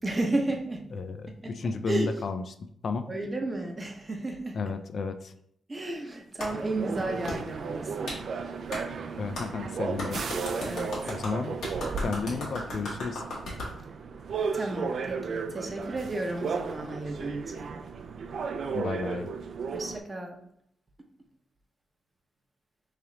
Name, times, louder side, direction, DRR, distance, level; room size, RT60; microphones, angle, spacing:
voice 1, 0.0-0.9 1.4-1.6 1.9-2.1 3.1-4.6 5.7-8.2 10.6-11.0 14.5-17.8 19.7-20.4, right 2 dB, 25° right, 3 dB, 0.7 m, -33 dB
voice 2, 0.9-2.4 2.8-3.1 4.5-5.3 9.1-10.2 11.1-11.6 12.0-13.2 18.7-19.3, left 4 dB, 55° left, 9 dB, 0.3 m, -32 dB
Clapping, 6.4-6.5 7.3-7.4 8.1-8.2 8.7-8.8 9.4-9.5 10.0-13.7, left 2 dB, 85° left, 1.3 m, -36 dB
sound 1, 6.5-20.0, right 5 dB, 65° right, 0.3 m, -34 dB
3.2 x 2.9 x 3.7 m, 0.71 s
cardioid pair, 100°, 0 cm